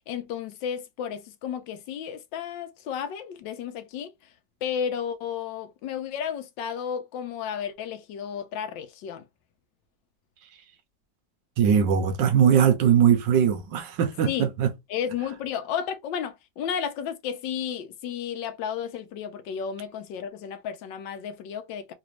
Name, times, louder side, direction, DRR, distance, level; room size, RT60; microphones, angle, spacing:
voice 1, 0.1-4.1 4.6-9.2 14.3-14.5 14.9-21.9, left 8 dB, 85° left, 1.4 m, -33 dB
voice 2, 11.6-14.3 14.6-14.7, right 8 dB, 80° right, 1.4 m, -20 dB
3.9 x 2.6 x 3.1 m
omnidirectional pair, 2.0 m